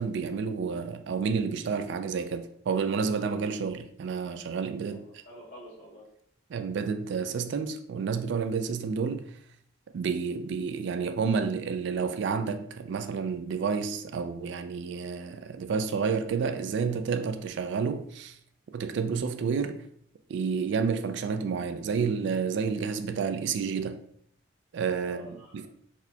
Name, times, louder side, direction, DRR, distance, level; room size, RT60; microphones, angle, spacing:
voice 1, 0.0-5.0 6.5-9.3 9.9-18.3 18.7-19.8 20.3-24.0 24.7-25.3 25.5-25.7, right 5 dB, 65° right, 0.3 m, -30 dB
voice 2, 4.9-6.0 25.0-25.7, equal, 70° left, 1.2 m, -48 dB
4.1 x 2.2 x 2.7 m
head